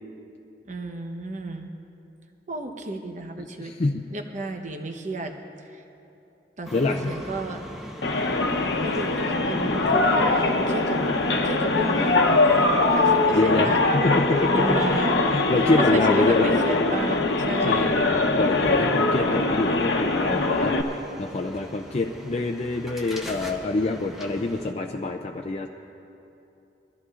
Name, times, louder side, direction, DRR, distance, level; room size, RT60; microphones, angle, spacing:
voice 1, 0.7-1.7 2.5-3.7 4.1-5.3 5.7-5.8 6.6-7.6 8.8-11.0 11.4-12.7 13.0-13.8 14.5-15.1 15.8-18.0, right 2 dB, 45° right, 5 dB, 1.0 m, -32 dB
voice 2, 3.6-4.0 6.7-7.2 9.7-9.8 13.3-16.6 17.6-25.7, left 3 dB, 35° left, 3 dB, 0.5 m, -26 dB
sound 1, 6.6-24.7, left 1 dB, ahead, 1.1 m, -41 dB
sound 2, 8.0-20.8, left 2 dB, 85° left, 1.0 m, -22 dB
22.5 x 14.0 x 2.5 m, 2.8 s
head